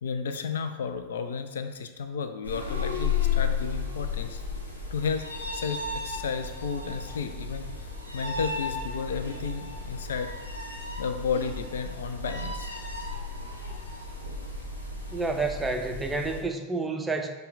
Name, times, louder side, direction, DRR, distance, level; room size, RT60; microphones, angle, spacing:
voice 1, 0.0-4.4 4.9-5.3 5.5-7.9 8.1-10.3 11.0-12.7, left 5 dB, 60° left, 8 dB, 0.3 m, -32 dB
sound 1, 2.4-16.4, left 5 dB, 80° left, 0.7 m, -33 dB
voice 2, 15.1-17.3, right 3 dB, 10° right, 5 dB, 0.4 m, -29 dB
5.4 x 2.2 x 4.0 m, 1.3 s
figure-of-eight pair, 90°, 0 cm